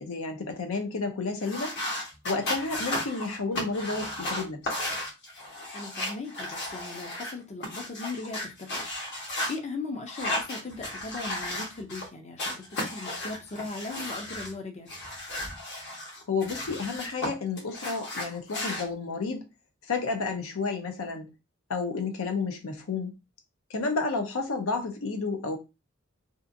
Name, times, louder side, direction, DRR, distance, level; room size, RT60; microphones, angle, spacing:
voice 1, 0.0-1.7 2.2-4.6 16.3-19.4 19.9-21.2 21.7-23.1 23.7-25.6, left 4 dB, 85° left, 0.6 m, -31 dB
sound 1, 1.4-7.3 7.6-9.5 10.1-12.1 12.4-14.5 14.9-17.3 17.6-18.8, left 1 dB, 55° left, 1.1 m, -34 dB
voice 2, 5.7-8.8 9.1-14.9, left 3 dB, 30° left, 0.5 m, -38 dB
2.6 x 2.4 x 2.5 m
head